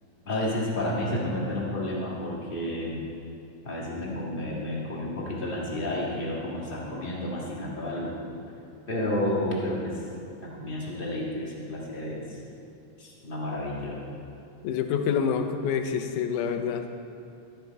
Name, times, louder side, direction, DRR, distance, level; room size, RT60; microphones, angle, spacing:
voice 1, 0.2-3.0 3.6-8.2 8.9-10.0 10.6-12.3 13.0-14.1, left 1 dB, 25° left, -5 dB, 1.2 m, -31 dB
voice 2, 14.6-16.9, left 7 dB, 80° left, 7 dB, 2.2 m, -27 dB
13.0 x 7.9 x 4.6 m, 2.7 s
omnidirectional pair, 3.6 m